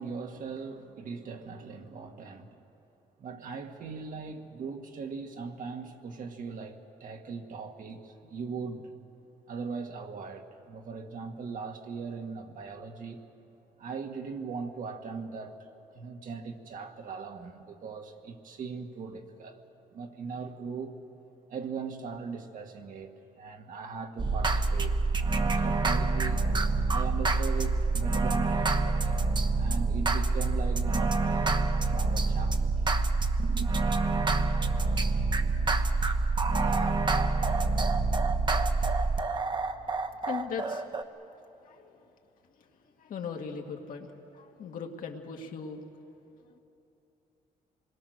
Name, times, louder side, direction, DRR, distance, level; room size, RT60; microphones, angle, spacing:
voice 1, 0.0-2.6 3.2-8.9 9.5-13.2 13.8-15.7 15.9-19.6 19.9-20.9 21.5-25.0 25.4-26.5 26.9-29.3 29.5-32.7 33.4-33.7, right 5 dB, 65° right, 2.0 m, -39 dB
sound 1, 24.2-41.0, right 3 dB, 30° right, 1.1 m, -27 dB
voice 2, 40.3-40.8 41.1-42.1 42.6-45.8 46.4-46.6, left 6 dB, 65° left, 2.1 m, -40 dB
26.0 x 21.5 x 6.6 m
cardioid pair, 110°, 15 cm